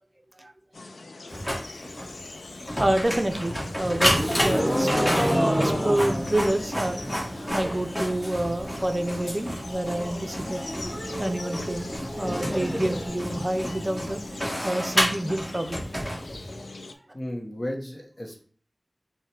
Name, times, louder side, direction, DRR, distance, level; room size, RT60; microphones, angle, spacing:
sound 1, 0.7-17.0, left 3 dB, 90° left, 0.3 m, -42 dB
Printer, 1.3-16.7, equal, 20° left, 1.3 m, -31 dB
voice 1, 2.8-4.9 5.5-7.0 7.4-10.6 11.2-11.9 12.2-14.2 14.6-15.9, right 1 dB, 30° right, 6 dB, 0.5 m, -28 dB
sound 2, 2.9-8.0 8.2-8.8 9.1-9.2 9.4-9.5 9.8-13.8, equal, ahead, 1.3 m, -30 dB
voice 2, 16.8-18.4, left 1 dB, 45° left, 0 dB, 0.9 m, -35 dB
5.3 x 2.2 x 3.2 m, 0.43 s
wide cardioid pair, 50°, 0 cm